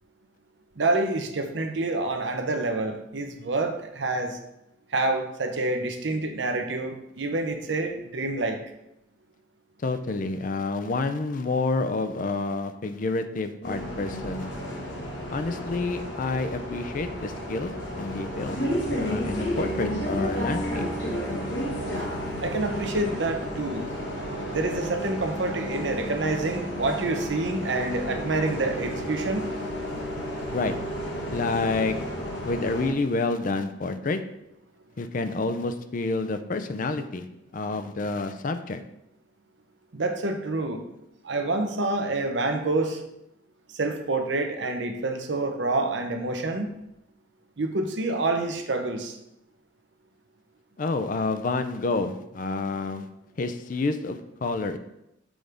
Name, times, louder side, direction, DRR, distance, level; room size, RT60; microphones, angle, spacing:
voice 1, 0.8-4.4 4.9-8.6 22.0-22.1 22.4-23.9 24.5-29.5 39.9-40.8 41.2-43.0 43.7-46.7 47.6-49.1, right 2 dB, 70° right, 6 dB, 0.8 m, -27 dB
voice 2, 9.8-14.5 15.3-18.6 18.9-20.9 30.5-30.8 31.3-32.0 32.4-34.2 35.0-37.2 37.5-38.8 50.8-53.1 53.4-54.8, left 3 dB, 45° left, 10 dB, 0.4 m, -28 dB
Bus, 13.6-32.9, equal, 70° left, 1.4 m, -32 dB
6.2 x 3.4 x 5.0 m, 0.84 s
head